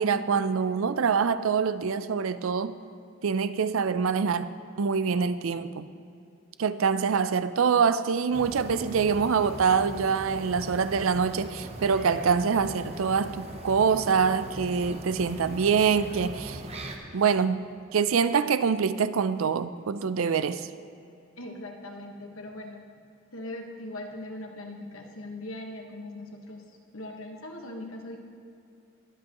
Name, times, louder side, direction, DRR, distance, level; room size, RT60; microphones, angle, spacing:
voice 1, 0.0-2.8 3.2-4.5 4.8-5.9 6.6-16.6 17.1-20.7, right 6 dB, 80° right, 13 dB, 0.5 m, -25 dB
sound 1, 8.3-17.0, right 1 dB, 30° right, 0.8 m, -40 dB
voice 2, 21.4-22.8 23.3-28.2, left 1 dB, 85° left, 2 dB, 1.4 m, -40 dB
21.5 x 7.6 x 3.0 m, 2.6 s
head